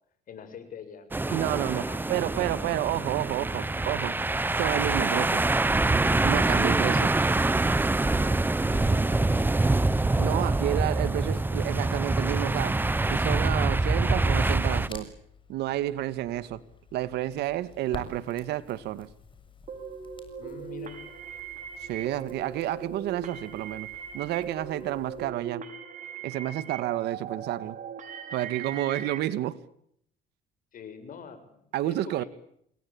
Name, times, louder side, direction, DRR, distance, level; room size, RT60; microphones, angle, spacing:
voice 1, 0.3-1.4 1.7-2.1 8.0-9.8 20.4-21.0 30.7-32.3, left 7 dB, 55° left, 7.4 m, -45 dB
sound 1, 1.1-14.9, right 2 dB, 10° right, 1.1 m, -25 dB
voice 2, 1.3-4.2 4.5-5.5 6.2-7.2 10.2-12.8 13.1-15.1 15.5-16.6 16.9-19.1 21.8-23.9 24.1-25.6 26.2-27.8 28.3-29.6 31.7-32.2, right 14 dB, 80° right, 1.9 m, -30 dB
Crackle, 14.3-25.3, left 4 dB, 30° left, 6.9 m, -50 dB
sound 2, 19.7-29.2, right 7 dB, 50° right, 6.1 m, -39 dB
29.0 x 21.5 x 8.7 m
cardioid pair, 110°, 17 cm